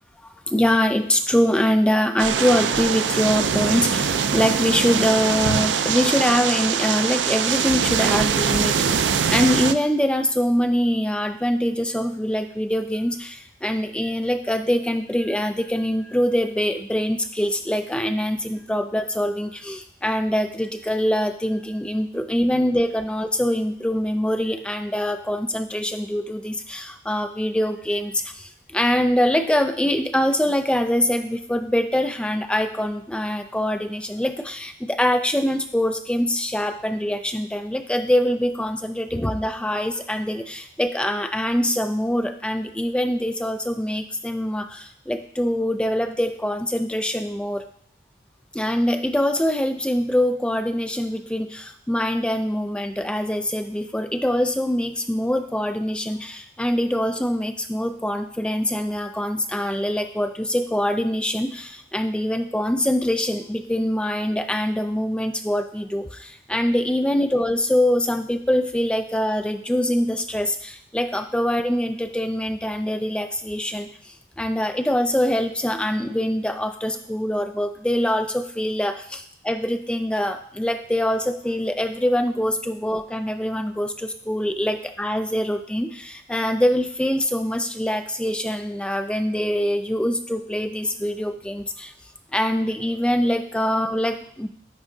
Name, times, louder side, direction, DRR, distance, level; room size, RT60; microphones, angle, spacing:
voice 1, 0.2-47.6 48.5-79.0 79.5-91.9 92.3-94.5, equal, 5° left, 7 dB, 0.3 m, -24 dB
sound 1, 2.2-9.7, right 7 dB, 85° right, 0.4 m, -22 dB
10.5 x 3.7 x 3.7 m, 0.64 s
head